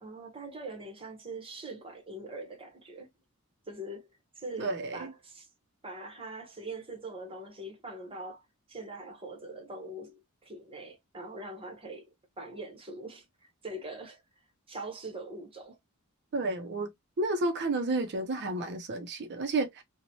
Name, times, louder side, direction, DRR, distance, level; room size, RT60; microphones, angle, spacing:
voice 1, 0.0-3.1 3.7-4.1 4.4-5.5 5.8-8.4 8.7-12.0 12.4-14.2 14.7-15.8, right 2 dB, 25° right, 0.8 m, -42 dB
voice 2, 4.6-5.1 16.3-16.9 17.2-19.8, right 2 dB, 50° right, 0.5 m, -31 dB
2.9 x 2.1 x 2.6 m
head